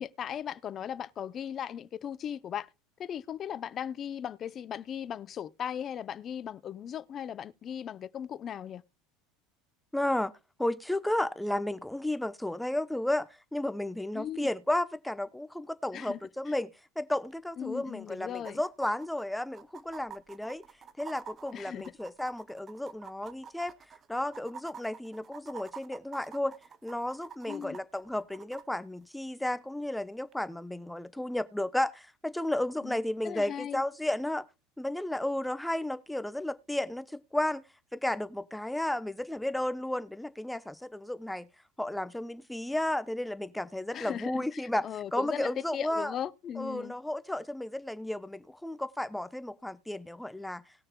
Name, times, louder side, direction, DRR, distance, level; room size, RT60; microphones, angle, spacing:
voice 1, 0.0-2.7 3.0-8.8 14.1-14.5 15.9-16.2 17.6-18.6 21.5-21.9 27.5-27.8 32.8-33.0 33.2-33.8 43.9-46.9, left 9 dB, 40° left, 0.6 m, -38 dB
voice 2, 9.9-10.3 10.6-16.7 17.0-20.6 21.0-23.7 24.1-26.5 26.8-34.4 34.8-37.6 37.9-41.5 41.8-44.8 45.1-46.1 46.6-50.6, left 1 dB, 5° left, 0.8 m, -33 dB
sound 1, 17.3-17.4 17.6-17.7 18.3-28.6 30.3-30.4, right 7 dB, 35° right, 0.8 m, -48 dB
19.5 x 6.5 x 2.3 m
hypercardioid pair, 85°, 0 cm